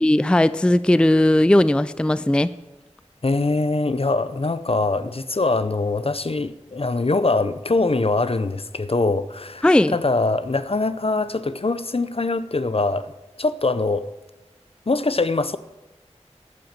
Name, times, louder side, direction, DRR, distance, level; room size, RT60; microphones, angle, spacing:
voice 1, 0.0-2.5 9.6-10.0, left 1 dB, 10° left, 0.3 m, -17 dB
voice 2, 3.2-13.1 13.4-14.1 14.9-15.6, left 3 dB, 55° left, 0.6 m, -23 dB
11.5 x 7.8 x 7.4 m
wide cardioid pair, 40°, 12 cm